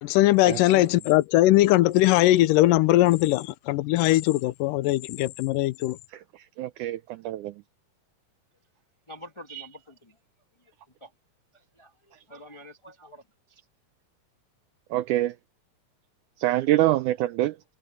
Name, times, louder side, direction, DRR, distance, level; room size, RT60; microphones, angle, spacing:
voice 1, 0.0-6.0, left 16 dB, 75° left, 2.3 m, -20 dB
voice 2, 6.6-7.5 14.9-15.3 16.4-17.6, right 15 dB, 80° right, 1.8 m, -25 dB
voice 3, 9.1-10.2 10.6-10.7 11.0-11.1 11.5-13.6, right 2 dB, 20° left, 0.8 m, -46 dB
omnidirectional pair, 4.1 m